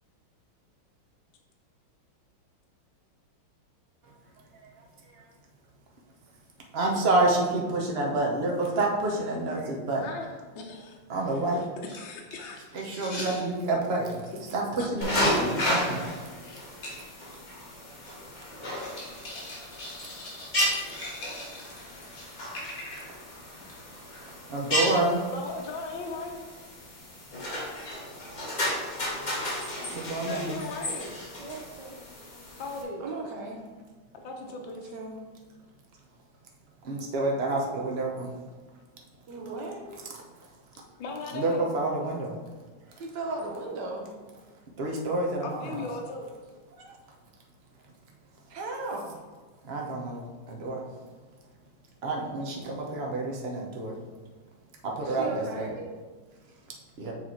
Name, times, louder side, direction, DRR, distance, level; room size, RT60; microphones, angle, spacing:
voice 1, 6.7-10.0 11.1-11.6 12.7-16.1 24.5-25.2 29.9-30.6 36.8-38.3 41.3-42.3 44.8-45.8 49.7-50.8 52.0-54.0 54.8-55.7 57.0-57.1, right 2 dB, 45° right, -1 dB, 0.8 m, -28 dB
voice 2, 10.5-11.0 11.3-11.6 11.9-12.9 14.8-14.9 16.4-16.7 20.0-20.2 25.3-26.4 30.3-31.2 32.6-33.0 34.1-34.9 41.0-41.7 45.4-46.3, left 3 dB, 70° left, 0 dB, 1.4 m, -38 dB
sound 1, 11.8-13.5 15.3-15.7 16.1-16.2 16.8-17.0 17.3-17.4 17.6-18.2 18.7-23.2 23.6-23.8 24.1-24.3 24.7-25.1 26.0-26.1, left 1 dB, 55° left, 2.1 m, -42 dB
sound 2, 15.0-32.8, left 1 dB, 35° left, 0.8 m, -33 dB
voice 3, 31.4-32.0 33.0-33.7 34.9-35.2 39.3-39.8 43.0-44.1 46.7-47.0 48.5-49.2 55.0-56.0 56.3-56.7, right 2 dB, 60° right, 1 dB, 1.4 m, -37 dB
6.7 x 4.2 x 4.4 m, 1.3 s
omnidirectional pair, 2.3 m